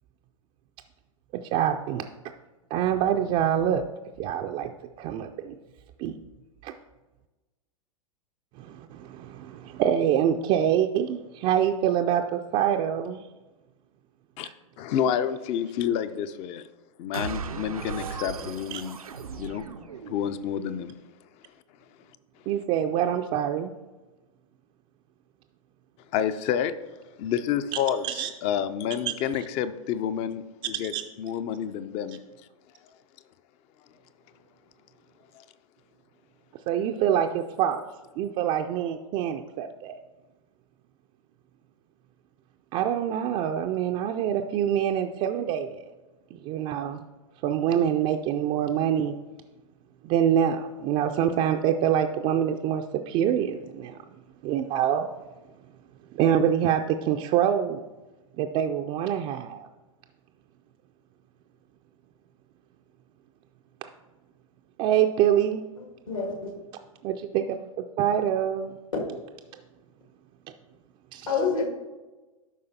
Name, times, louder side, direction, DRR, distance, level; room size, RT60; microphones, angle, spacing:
voice 1, 1.3-2.1 2.7-3.8 4.2-4.7 5.0-5.6 6.0-6.2 6.6-6.7 8.6-13.2 18.7-18.8 22.5-23.7 28.0-28.3 29.1-29.4 30.9-31.0 36.7-37.8 38.2-40.0 42.7-45.8 46.3-47.0 47.4-49.1 50.0-54.0 54.4-55.1 56.1-57.8 58.4-59.7 64.8-65.6 67.0-67.7 68.0-68.8 71.1-71.3, right 9 dB, 35° right, 0.4 m, -25 dB
voice 2, 14.8-16.6 17.0-19.0 19.4-19.7 20.1-20.9 26.1-26.7 27.2-30.9 31.2-32.2 35.3-35.4, left 9 dB, 35° left, 0.5 m, -29 dB
sound 1, 17.1-20.5, right 6 dB, 85° right, 0.5 m, -37 dB
voice 3, 65.8-66.5 71.3-71.7, left 5 dB, 75° left, 2.0 m, -28 dB
12.0 x 5.0 x 2.7 m
figure-of-eight pair, 100°, 18 cm